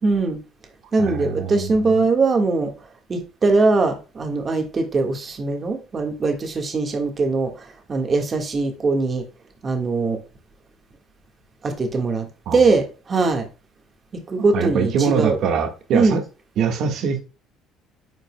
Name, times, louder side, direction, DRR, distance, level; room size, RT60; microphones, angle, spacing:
voice 1, 0.0-0.4 0.9-2.7 3.1-7.6 7.9-9.2 9.6-10.2 11.6-13.4 14.1-15.4 15.9-16.2, right 3 dB, 25° right, 1.6 m, -21 dB
voice 2, 1.0-2.1 12.5-12.6 14.4-16.2 16.6-17.2, right 6 dB, 55° right, 1.5 m, -23 dB
9.5 x 5.2 x 2.2 m
cardioid pair, 150°, 0 cm